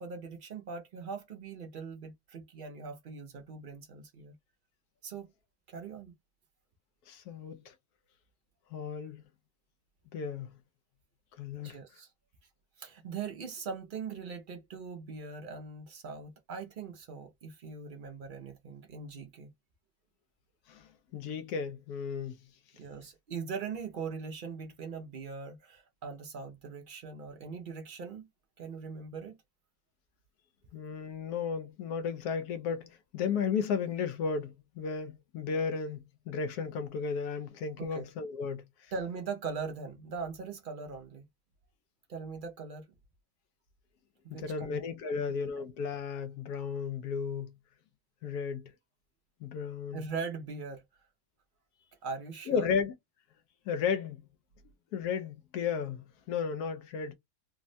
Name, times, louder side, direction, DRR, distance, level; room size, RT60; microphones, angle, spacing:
voice 1, 0.0-4.4 5.0-5.3 5.7-6.1 11.6-12.1 12.8-19.5 22.8-28.3 28.6-29.4 37.8-38.0 38.9-41.2 42.1-42.9 44.2-44.8 45.1-45.2 49.9-50.8 52.0-52.7, right 5 dB, 90° right, 0.4 m, -41 dB
voice 2, 7.1-7.7 8.7-9.2 10.1-10.5 11.4-11.8 20.7-22.4 30.7-38.6 44.3-47.5 48.2-48.7 49.4-50.1 52.5-52.9 53.7-54.2 54.9-57.1, left 6 dB, 80° left, 1.1 m, -34 dB
3.4 x 2.1 x 2.5 m
omnidirectional pair, 1.6 m